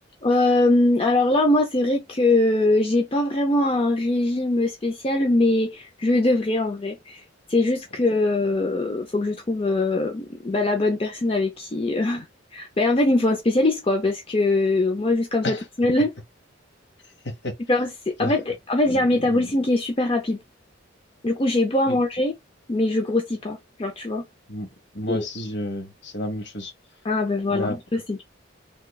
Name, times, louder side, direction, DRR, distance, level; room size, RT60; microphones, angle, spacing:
voice 1, 0.2-7.2 7.5-12.3 12.5-16.1 17.7-18.4 18.7-20.4 21.2-22.3 22.7-24.2 25.1-25.3 27.0-28.2, left 2 dB, 30° left, 0.5 m, -22 dB
voice 2, 18.9-19.5 21.9-22.0 24.5-24.7 24.9-26.7 27.5-27.8, left 1 dB, 60° left, 1.1 m, -31 dB
3.5 x 3.2 x 2.3 m
head